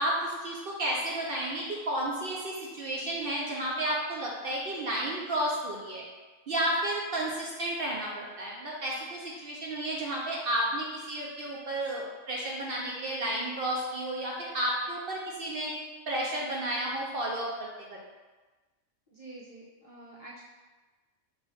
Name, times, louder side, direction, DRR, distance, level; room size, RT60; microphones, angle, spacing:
voice 1, 0.0-6.0 6.5-15.7 16.1-17.7, right 1 dB, 60° right, -3 dB, 0.6 m, -32 dB
voice 2, 19.1-20.4, right 2 dB, 35° left, -8 dB, 0.6 m, -48 dB
5.6 x 2.7 x 3.0 m, 1.3 s
omnidirectional pair, 1.3 m